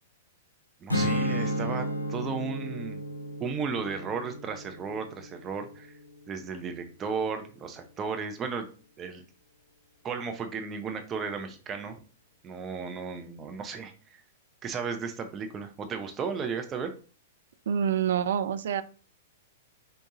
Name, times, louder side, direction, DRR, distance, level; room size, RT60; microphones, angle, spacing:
voice 1, 0.8-3.0 3.4-5.9 6.3-8.7 9.0-9.2 10.0-12.0 12.4-14.2 14.6-16.9, right 5 dB, 25° right, 6 dB, 0.8 m, -34 dB
Strum, 0.9-6.2, equal, 85° left, 0.8 m, -33 dB
voice 2, 17.7-18.8, right 8 dB, 60° right, 12 dB, 0.4 m, -26 dB
5.9 x 2.7 x 2.8 m, 0.37 s
figure-of-eight pair, 105°, 0 cm